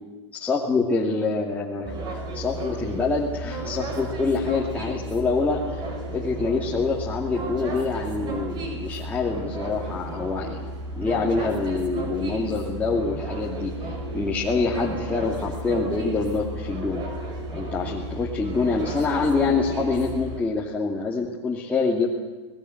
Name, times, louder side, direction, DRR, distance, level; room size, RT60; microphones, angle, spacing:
voice 1, 0.3-5.8 6.1-10.6 10.9-17.0 17.5-22.1, left 4 dB, 10° left, -4 dB, 2.5 m, -26 dB
sound 1, 1.8-20.4, right 1 dB, 30° right, 5.2 m, -33 dB
26.0 x 19.5 x 8.0 m, 1.2 s
hypercardioid pair, 135°, 15 cm